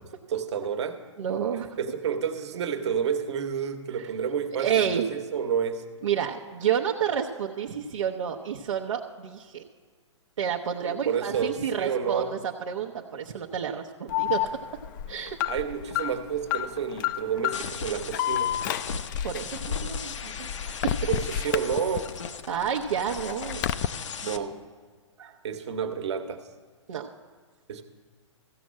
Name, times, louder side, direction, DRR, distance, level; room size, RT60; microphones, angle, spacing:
voice 1, 0.3-1.0 1.5-5.8 10.8-12.3 15.5-18.6 21.1-22.0 24.2-24.5 25.4-26.4 27.7-27.8, right 7 dB, 65° right, 7 dB, 1.2 m, -30 dB
voice 2, 1.2-1.8 4.0-4.1 4.6-5.1 6.0-9.6 10.4-14.6 15.1-15.4 19.2-21.1 22.5-23.6 25.2-25.4 26.9-27.1, right 8 dB, 80° right, -1 dB, 0.8 m, -30 dB
Alarm, 14.1-22.3 22.6-23.9, left 11 dB, 40° left, 0.4 m, -30 dB
sound 1, 17.5-24.4, left 6 dB, 75° left, 0.8 m, -38 dB
15.0 x 6.2 x 7.5 m, 1.5 s
hypercardioid pair, 130°, 16 cm